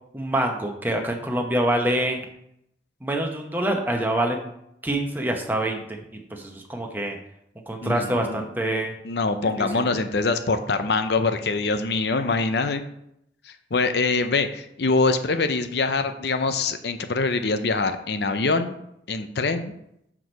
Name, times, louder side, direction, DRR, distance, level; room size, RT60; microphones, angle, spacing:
voice 1, 0.1-2.2 3.0-4.5 4.8-5.8 6.3-7.2 7.7-8.9 9.6-9.8, right 1 dB, 10° right, 2 dB, 0.8 m, -25 dB
voice 2, 7.8-8.5 9.0-12.8 13.4-18.7 19.1-19.7, left 3 dB, 70° left, 9 dB, 0.6 m, -24 dB
6.0 x 4.8 x 5.3 m, 0.77 s
head